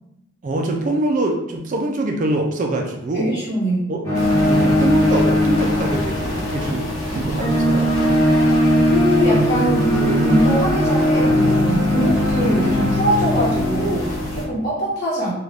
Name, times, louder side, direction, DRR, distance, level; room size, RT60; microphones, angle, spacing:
voice 1, 0.4-3.3 3.9-4.0 4.4-7.9, right 2 dB, 40° right, 2 dB, 0.3 m, -24 dB
voice 2, 3.1-3.9 8.8-15.3, equal, 55° left, -7 dB, 1.2 m, -22 dB
sound 1, 4.0-14.5, left 1 dB, 15° left, 0.7 m, -19 dB
sound 2, 4.1-14.5, equal, 80° left, 0.8 m, -29 dB
2.5 x 2.2 x 3.2 m, 0.83 s
head